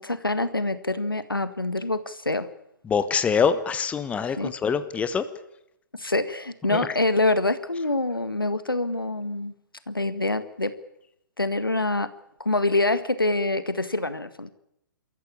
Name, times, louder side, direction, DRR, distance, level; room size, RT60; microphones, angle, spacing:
voice 1, 0.0-2.5 4.4-4.5 5.9-9.5 9.9-10.8 11.4-12.1 12.4-14.5, left 2 dB, 90° left, 13 dB, 1.7 m, -25 dB
voice 2, 2.9-5.2 6.7-6.8, left 6 dB, 10° left, 12 dB, 1.2 m, -24 dB
27.5 x 14.0 x 8.7 m, 0.81 s
figure-of-eight pair, 125°, 11 cm